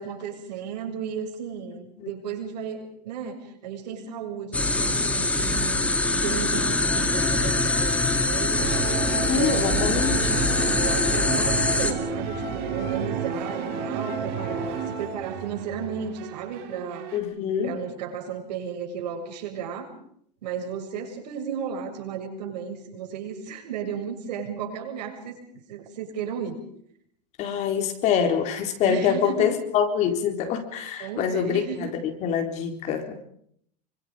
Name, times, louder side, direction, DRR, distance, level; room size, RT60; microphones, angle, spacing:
voice 1, 0.0-8.7 9.2-10.2 10.8-17.1 17.6-19.9 20.4-25.4 25.7-26.6 28.8-29.6 31.0-31.9, right 7 dB, 85° right, 3 dB, 7.5 m, -34 dB
sound 1, 4.5-11.9, left 2 dB, 5° left, 2.2 m, -23 dB
sound 2, 6.8-15.0, left 10 dB, 85° left, 6.7 m, -42 dB
sound 3, 8.6-17.2, right 6 dB, 45° right, 5.5 m, -31 dB
voice 2, 9.3-10.3 17.1-17.8 27.4-33.1, left 8 dB, 35° left, 5 dB, 4.2 m, -25 dB
27.5 x 25.0 x 5.1 m, 0.66 s
supercardioid pair, 165°, 21 cm